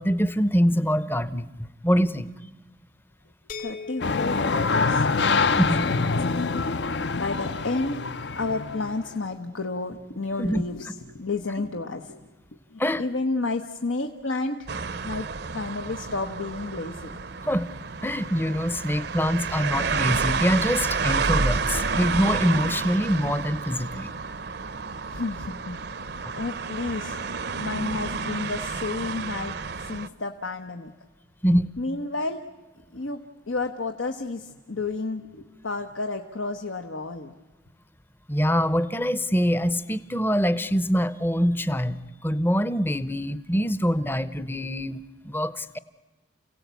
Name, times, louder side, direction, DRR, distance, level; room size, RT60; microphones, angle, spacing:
voice 1, 0.0-2.3 5.6-5.8 10.4-10.6 12.8-13.0 17.5-17.7 18.0-24.1 31.4-31.7 38.3-45.8, equal, 10° left, 16 dB, 0.7 m, -24 dB
sound 1, 3.5-9.3, left 5 dB, 45° left, 1.0 m, -44 dB
voice 2, 3.6-5.1 5.4-6.4 6.7-12.2 12.7-14.7 15.0-15.3 15.5-17.1 25.1-27.3 27.6-29.6 29.8-30.9 31.8-32.4 32.9-33.2 33.5-37.3, left 3 dB, 85° left, 5 dB, 1.1 m, -31 dB
sound 2, 4.0-9.1, left 4 dB, 65° left, 0.7 m, -25 dB
sound 3, 14.7-30.1, right 4 dB, 55° right, 0.7 m, -30 dB
29.0 x 17.0 x 8.2 m, 1.3 s
head